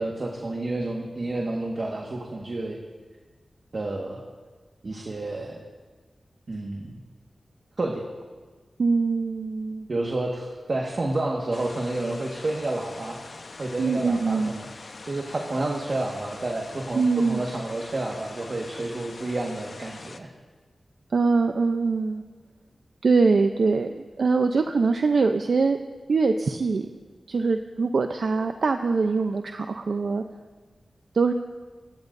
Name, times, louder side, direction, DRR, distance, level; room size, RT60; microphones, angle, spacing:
voice 1, 0.0-2.8 3.7-4.2 4.8-5.6 6.5-7.0 7.8-8.1 9.9-14.7 15.0-20.3, right 2 dB, 55° right, 0 dB, 1.6 m, -30 dB
voice 2, 8.8-9.9 13.8-14.5 16.9-17.4 21.1-22.2 23.0-25.8 26.1-26.9 27.3-30.2 31.1-31.3, right 4 dB, 75° right, 5 dB, 0.6 m, -23 dB
sound 1, 11.5-20.2, left 3 dB, 60° left, 0.9 m, -43 dB
24.0 x 19.0 x 2.7 m, 1.4 s
wide cardioid pair, 85°, 0 cm